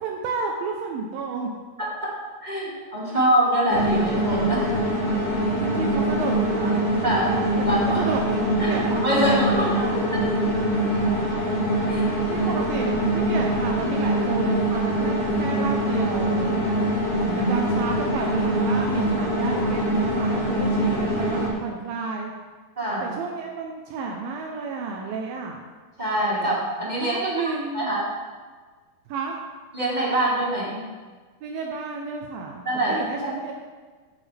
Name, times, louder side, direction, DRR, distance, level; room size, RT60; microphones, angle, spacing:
voice 1, 0.0-1.5 2.7-2.8 3.1-3.2 5.6-6.8 7.7-8.9 9.2-10.1 11.2-11.3 12.0-16.8 17.4-22.3 23.0-25.7 27.0-27.9 29.1-29.4 31.4-33.5, right 4 dB, 80° right, 1 dB, 2.5 m, -31 dB
voice 2, 1.8-2.1 2.4-4.7 7.0-7.4 7.6-8.0 8.6-10.2 11.9-12.0 17.2-17.5 22.8-23.1 26.0-27.2 27.7-28.0 29.7-30.8 32.6-32.9, right 1 dB, 20° right, -6 dB, 1.4 m, -24 dB
sound 1, 3.7-21.5, right 1 dB, 25° left, 3.3 m, -23 dB
15.0 x 8.2 x 3.4 m, 1.4 s
omnidirectional pair, 4.4 m